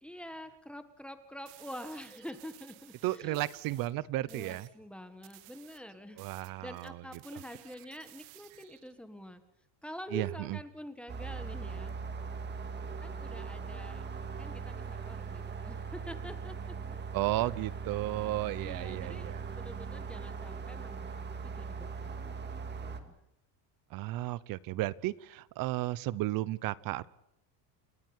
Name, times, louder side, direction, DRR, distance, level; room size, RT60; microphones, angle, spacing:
voice 1, 0.0-3.4 4.3-6.2 6.6-9.4 9.8-12.0 13.0-14.0 14.4-16.6 18.1-18.3 18.6-21.1 21.4-23.1, equal, ahead, 9 dB, 1.7 m, -47 dB
sound 1, 1.5-3.9 4.3-4.8 5.2-8.9, right 18 dB, 80° right, 1.9 m, -56 dB
voice 2, 3.0-4.7 6.2-7.0 10.1-10.6 17.1-19.4 23.9-27.1, right 17 dB, 45° right, 20 dB, 0.9 m, -34 dB
sound 2, 11.1-23.0, right 5 dB, 20° right, 2.1 m, -40 dB
30.0 x 14.0 x 9.7 m, 0.76 s
cardioid pair, 165°, 47 cm